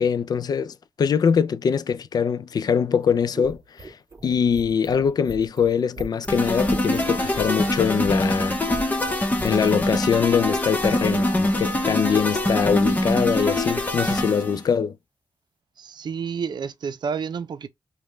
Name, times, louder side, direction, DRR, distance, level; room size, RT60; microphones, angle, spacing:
voice 1, 0.0-4.0 4.2-8.6 9.4-15.0, left 7 dB, 60° left, 0.4 m, -23 dB
sound 1, 3.0-9.9, right 2 dB, 30° right, 0.9 m, -39 dB
sound 2, 6.3-14.6, left 1 dB, 20° left, 0.9 m, -24 dB
voice 2, 15.8-17.7, right 6 dB, 70° right, 0.5 m, -30 dB
5.1 x 2.2 x 3.1 m
wide cardioid pair, 140°, 8 cm